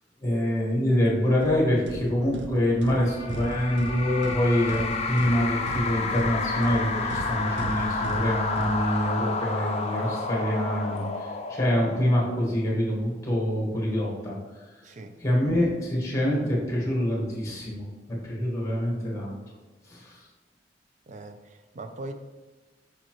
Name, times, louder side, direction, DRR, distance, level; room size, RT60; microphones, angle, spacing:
voice 1, 0.2-11.0 11.5-14.4 15.2-17.9 18.2-19.3 19.9-20.2, equal, 15° left, -2 dB, 1.5 m, -25 dB
sound 1, 1.4-9.4, right 1 dB, 85° right, 0.6 m, -38 dB
sound 2, 2.9-12.6, left 3 dB, 35° left, 0.5 m, -31 dB
voice 2, 14.8-15.2 21.1-22.1, right 2 dB, 40° right, 8 dB, 0.5 m, -40 dB
6.7 x 5.1 x 3.0 m, 1.3 s
head